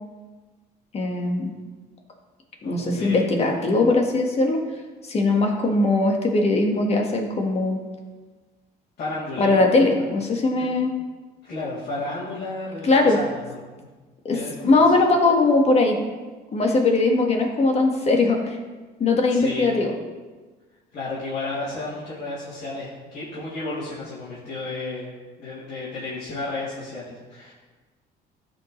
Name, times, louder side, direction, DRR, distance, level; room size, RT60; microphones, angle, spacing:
voice 1, 0.9-1.5 2.6-4.6 5.0-7.8 9.4-10.9 12.8-13.2 14.2-16.0 16.5-18.6 19.0-19.9, left 3 dB, 40° left, 2 dB, 1.6 m, -20 dB
voice 2, 2.6-3.2 9.0-9.7 10.5-10.8 11.4-13.5 13.8-13.9 14.3-14.7 19.0-19.8 20.9-25.1 25.4-27.5, left 2 dB, 60° left, -10 dB, 3.1 m, -33 dB
14.0 x 5.4 x 3.2 m, 1.3 s
cardioid pair, 110°, 17 cm